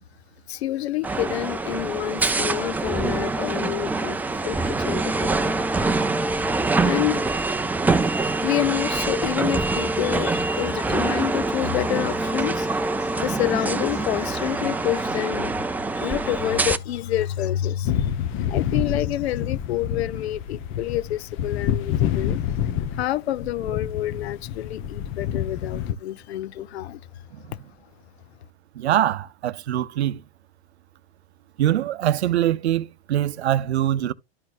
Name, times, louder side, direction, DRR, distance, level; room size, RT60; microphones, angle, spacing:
voice 1, 0.5-5.6 6.0-6.4 6.8-7.7 8.4-22.4 22.9-27.0, left 13 dB, 80° left, 0.6 m, -28 dB
sound 1, 1.0-16.8, right 3 dB, 5° right, 0.4 m, -25 dB
sound 2, 17.9-25.9, left 10 dB, 40° left, 0.9 m, -27 dB
voice 2, 28.7-30.2 31.6-34.1, right 12 dB, 90° right, 0.7 m, -23 dB
12.5 x 4.3 x 2.5 m
hypercardioid pair, 115°, 32 cm